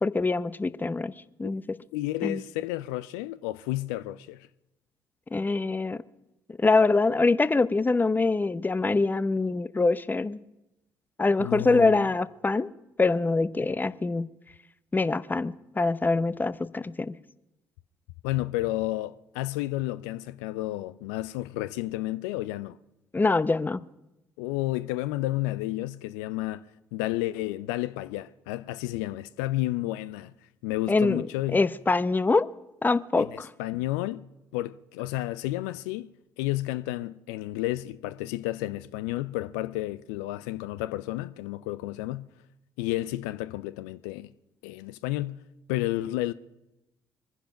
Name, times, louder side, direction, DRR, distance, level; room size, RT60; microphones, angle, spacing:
voice 1, 0.0-1.1 1.4-1.6 2.2-2.4 5.3-6.0 6.6-10.4 11.2-12.7 13.0-14.3 14.9-17.2 23.1-23.8 30.9-31.2 31.5-32.5 32.8-33.5, left 3 dB, 20° left, 0.8 m, -24 dB
voice 2, 1.9-4.5 11.4-12.0 18.2-22.8 24.4-26.6 26.9-30.3 30.6-31.7 33.2-34.3 34.5-36.1 36.4-42.3 42.8-44.3 44.6-45.4 45.7-46.3, left 16 dB, 75° left, 0.5 m, -31 dB
23.5 x 10.0 x 5.8 m
figure-of-eight pair, 45°, 10 cm